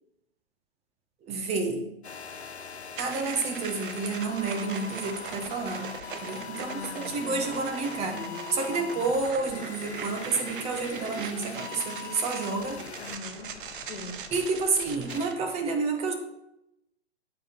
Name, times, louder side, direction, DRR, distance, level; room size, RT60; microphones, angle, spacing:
voice 1, 1.2-1.9 3.0-5.9 6.2-12.8 14.3-16.1, right 4 dB, 20° right, 3 dB, 1.2 m, -30 dB
sound 1, 2.0-15.2, left 6 dB, 80° left, 0.9 m, -42 dB
sound 2, 3.0-15.3, right 7 dB, 55° right, 0.9 m, -41 dB
voice 2, 6.5-7.6 13.0-14.3, left 3 dB, 60° left, 5 dB, 1.7 m, -42 dB
sound 3, 7.1-14.1, left 3 dB, 5° left, 1.5 m, -48 dB
7.5 x 5.3 x 5.9 m, 0.83 s
figure-of-eight pair, 120°, 32 cm